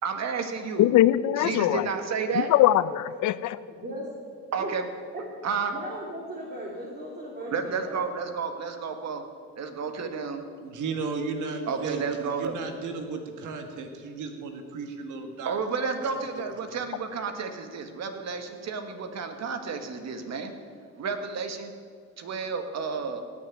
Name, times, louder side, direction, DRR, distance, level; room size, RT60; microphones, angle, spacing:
voice 1, 0.0-0.9 1.4-2.5 4.5-4.8 5.4-5.8 7.4-9.2 9.6-10.4 11.7-12.6 15.5-20.5 21.0-21.7 22.2-23.2, right 5 dB, 60° right, 6 dB, 1.8 m, -31 dB
voice 2, 0.8-1.9 2.3-3.3, left 13 dB, 75° left, 16 dB, 0.6 m, -21 dB
voice 3, 5.7-8.0, right 1 dB, 35° right, -4 dB, 2.9 m, -37 dB
voice 4, 10.6-15.6 16.0-16.5, right 4 dB, 80° right, 5 dB, 2.0 m, -35 dB
17.5 x 6.6 x 9.2 m, 2.1 s
cardioid pair, 90°, 30 cm